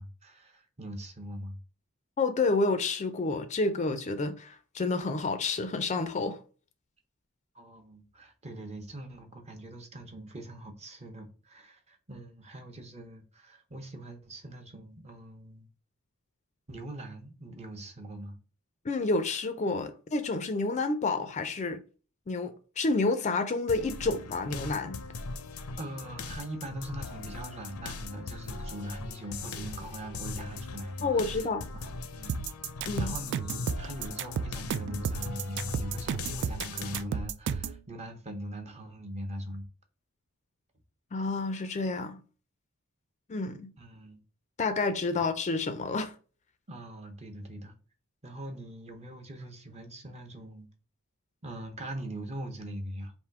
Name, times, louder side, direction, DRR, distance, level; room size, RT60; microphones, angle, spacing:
voice 1, 0.0-1.6 7.5-15.7 16.7-18.4 25.8-31.5 31.7-32.4 33.0-39.6 43.8-44.2 46.7-47.7 48.2-50.7 51.4-53.1, right 1 dB, 30° right, 0.8 m, -41 dB
voice 2, 2.2-6.4 18.8-21.8 22.3-25.0 31.0-31.7 32.9-33.1 41.1-42.2 43.3-43.7 44.6-46.1, left 3 dB, 35° left, 0.4 m, -29 dB
sound 1, 23.7-37.0, left 4 dB, 85° left, 0.6 m, -40 dB
sound 2, 32.3-37.8, right 6 dB, 55° right, 0.3 m, -32 dB
3.5 x 2.7 x 4.5 m
head